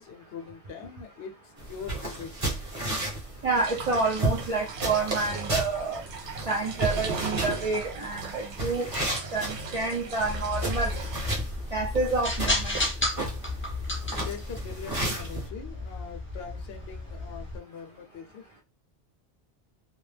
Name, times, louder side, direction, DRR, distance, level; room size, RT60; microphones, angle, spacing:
voice 1, 0.0-2.7 14.1-18.4, left 6 dB, 65° left, 0.8 m, -42 dB
sound 1, 1.6-15.5, right 1 dB, 30° right, 0.9 m, -34 dB
voice 2, 3.4-6.0 6.5-8.9 9.3-10.9 11.7-12.8, right 3 dB, 60° right, 0.3 m, -28 dB
sound 2, 3.5-11.3, right 4 dB, 75° right, 0.9 m, -38 dB
sound 3, 10.2-17.6, left 2 dB, 20° left, 0.3 m, -33 dB
2.3 x 2.0 x 3.2 m
omnidirectional pair, 1.2 m